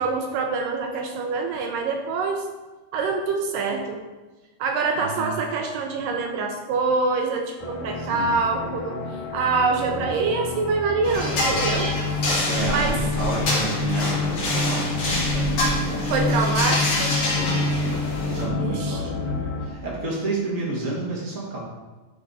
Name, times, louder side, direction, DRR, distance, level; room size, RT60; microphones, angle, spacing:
voice 1, 0.0-2.5 2.9-4.0 4.6-9.0 9.3-11.9 12.7-13.0 16.1-17.1 17.9-18.0 18.6-19.0, right 4 dB, 80° right, 3 dB, 2.1 m, -25 dB
voice 2, 4.9-5.3 8.0-8.3 9.9-10.0 12.5-16.1 17.3-21.6, right 2 dB, 50° right, -5 dB, 0.9 m, -31 dB
sound 1, 7.6-19.7, left 3 dB, 80° left, 1.4 m, -28 dB
sound 2, 11.0-18.4, left 1 dB, 45° left, 2.4 m, -26 dB
11.5 x 3.9 x 4.1 m, 1.2 s
omnidirectional pair, 4.2 m